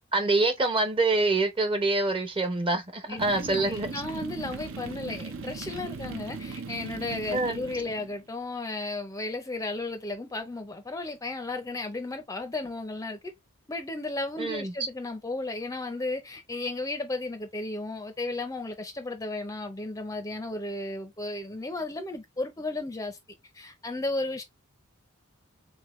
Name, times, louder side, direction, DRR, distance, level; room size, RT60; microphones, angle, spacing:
voice 1, 0.1-3.9 7.3-7.6 14.4-14.7, right 2 dB, 25° right, 0.8 m, -25 dB
voice 2, 3.1-13.3 13.7-23.2 23.5-24.4, left 2 dB, 15° left, 0.6 m, -34 dB
sound 1, 3.2-8.2, right 4 dB, 65° right, 0.8 m, -38 dB
3.7 x 3.5 x 3.1 m
head